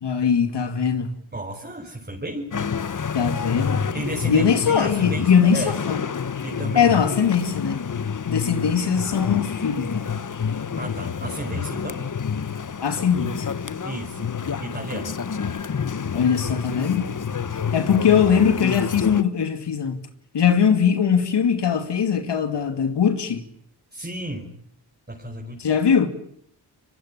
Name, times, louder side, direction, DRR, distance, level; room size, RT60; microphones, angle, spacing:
voice 1, 0.0-1.1 3.1-3.8 4.3-6.0 6.7-7.8 8.3-10.1 12.8-13.5 16.1-17.1 17.5-20.0 20.3-23.4 25.6-26.1, left 7 dB, 85° left, 2.5 m, -21 dB
voice 2, 1.3-2.5 3.9-5.8 6.4-7.2 10.8-12.1 13.8-14.3 14.6-15.2 23.9-24.5 25.1-25.7, right 1 dB, 25° right, 5.1 m, -33 dB
sound 1, 2.5-19.2, left 6 dB, 50° left, 1.2 m, -28 dB
24.5 x 23.5 x 8.8 m
cardioid pair, 60°, 41 cm